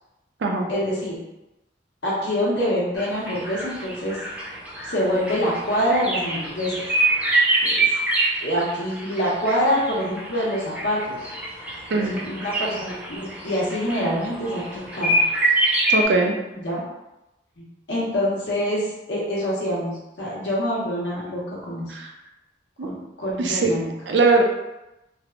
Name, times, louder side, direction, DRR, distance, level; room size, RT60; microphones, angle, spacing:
voice 1, 0.7-1.2 2.0-4.2 4.8-6.7 7.6-7.9 8.4-11.3 11.9-15.2 16.5-16.8 17.6-22.0 22.8-23.9, equal, 85° left, -6 dB, 1.0 m, -25 dB
sound 1, 3.0-16.0, right 2 dB, 10° right, 0.4 m, -25 dB
voice 2, 11.9-12.2 15.9-16.3 21.9-22.1 22.8-22.9 23.4-23.7 24.1-24.4, right 3 dB, 75° right, 1 dB, 0.4 m, -20 dB
3.3 x 2.1 x 2.4 m, 0.96 s
head